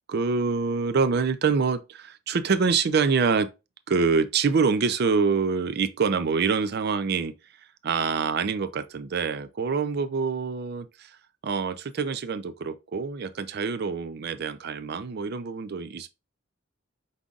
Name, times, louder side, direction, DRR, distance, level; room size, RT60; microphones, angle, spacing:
voice 1, 0.1-3.5 3.9-7.3 7.8-11.2 11.4-16.1, right 5 dB, 55° right, 0.4 m, -25 dB
5.4 x 3.7 x 2.4 m
head